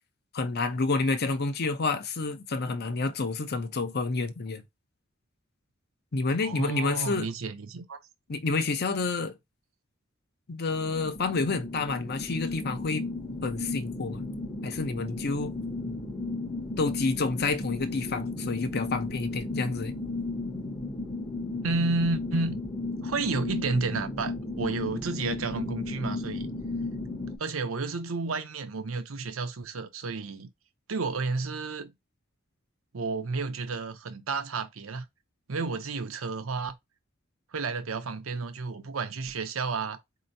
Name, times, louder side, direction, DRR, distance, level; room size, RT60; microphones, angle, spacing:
voice 1, 0.3-4.6 6.1-7.3 8.3-9.4 10.5-13.0 13.4-14.2 14.6-15.5 16.8-19.9, left 3 dB, 50° left, 0.7 m, -29 dB
voice 2, 6.4-8.0 21.6-22.6 23.0-26.5 27.4-30.5 30.9-31.9 32.9-35.1 35.5-36.7 37.5-40.0, right 3 dB, 80° right, 0.7 m, -31 dB
sound 1, 10.8-27.4, left 2 dB, 20° left, 0.8 m, -34 dB
4.2 x 2.9 x 2.6 m
head